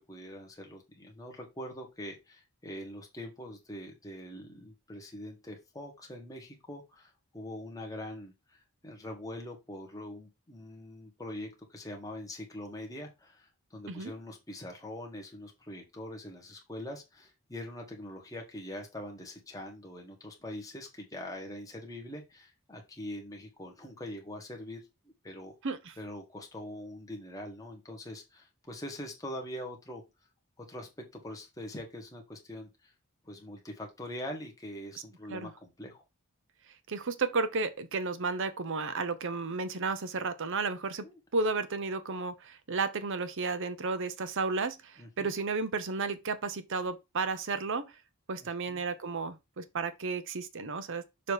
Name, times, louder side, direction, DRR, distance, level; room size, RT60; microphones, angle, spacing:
voice 1, 0.1-24.8 25.2-25.5 26.0-30.0 30.6-32.9 33.2-36.0 41.0-41.2 45.0-45.4 48.7-48.8, left 1 dB, 15° left, 1.5 m, -43 dB
voice 2, 25.6-25.9 35.3-35.5 36.9-41.1 41.3-47.9 48.3-51.3, right 4 dB, 60° right, 0.7 m, -33 dB
6.8 x 3.0 x 4.8 m
head